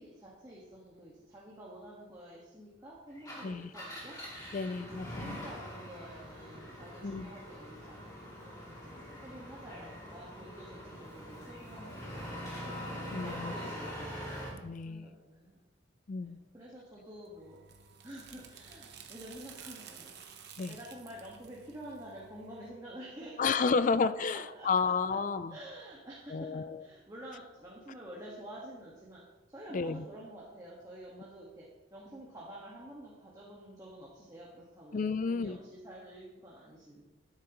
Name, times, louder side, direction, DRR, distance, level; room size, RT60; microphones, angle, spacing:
voice 1, 0.0-4.2 4.8-8.9 9.2-12.0 13.2-14.1 14.8-15.6 16.2-17.6 18.0-20.1 20.4-23.5 23.8-24.0 24.3-25.2 25.5-29.2 29.5-37.0, right 1 dB, 20° right, -6 dB, 1.5 m, -49 dB
Engine, 3.1-14.6, equal, 15° left, 2.7 m, -43 dB
voice 2, 4.5-5.5 7.0-7.3 13.1-13.5 14.6-15.1 16.1-16.4 20.6-20.8 23.4-25.6 26.3-26.8 29.7-30.0 34.9-35.6, left 4 dB, 40° left, 14 dB, 0.4 m, -31 dB
sound 1, 17.3-22.7, right 7 dB, 55° right, 1.0 m, -52 dB
12.0 x 9.7 x 3.0 m, 1.1 s
head